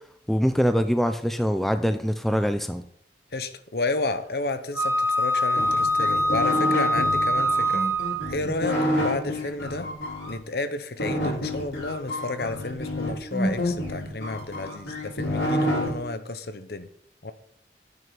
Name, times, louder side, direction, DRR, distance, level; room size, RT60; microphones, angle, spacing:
voice 1, 0.3-2.8, equal, ahead, 9 dB, 0.4 m, -23 dB
voice 2, 3.3-7.9 8.3-9.9 10.3-16.9 17.2-17.3, left 3 dB, 60° left, 11 dB, 0.8 m, -31 dB
Wind instrument woodwind instrument, 4.8-8.3, equal, 15° right, 1.0 m, -23 dB
sound 1, 5.6-10.3 11.0-15.9, left 1 dB, 90° left, 3.9 m, -28 dB
9.4 x 5.5 x 6.9 m, 0.66 s
head